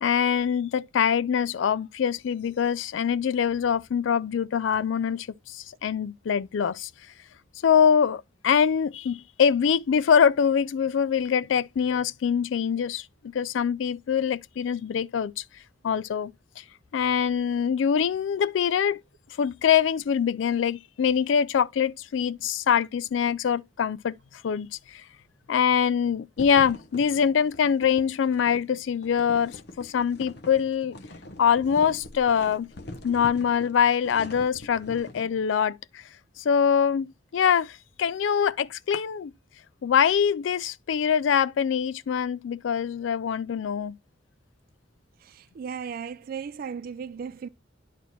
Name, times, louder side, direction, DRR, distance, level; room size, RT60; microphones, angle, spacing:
voice 1, 0.0-6.9 7.6-13.0 13.3-15.4 15.8-16.6 16.9-19.0 19.4-24.2 24.4-25.0 25.5-31.0 31.4-32.7 33.0-36.0 36.4-39.3 39.8-44.0, left 7 dB, 80° left, 0.4 m, -24 dB
sound 1, 26.4-35.3, left 2 dB, 60° left, 0.9 m, -43 dB
voice 2, 45.2-47.5, right 6 dB, 50° right, 0.3 m, -36 dB
11.0 x 4.1 x 3.0 m
head